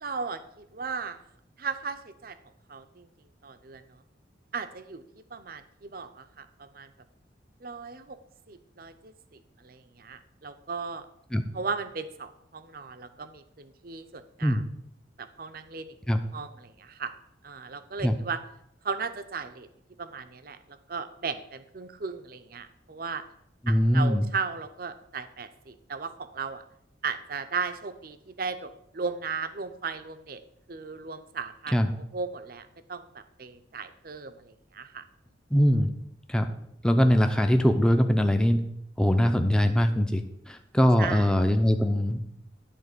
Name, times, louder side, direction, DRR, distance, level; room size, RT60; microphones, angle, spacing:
voice 1, 0.0-1.2 1.6-2.4 2.7-3.1 3.4-4.0 4.5-5.0 5.3-6.9 7.6-8.2 8.5-11.1 11.5-14.6 15.2-16.0 16.3-17.1 17.4-18.4 18.8-19.7 20.0-23.2 23.7-26.6 27.0-30.4 30.7-31.8 32.1-35.0 41.0-41.3, right 5 dB, 50° right, 10 dB, 0.6 m, -36 dB
voice 2, 23.7-24.3 31.7-31.9 35.5-35.9 36.3-36.5 36.8-38.6 39.0-40.2 40.5-42.2, equal, 5° left, 6 dB, 0.5 m, -22 dB
10.5 x 3.9 x 6.6 m, 0.78 s
head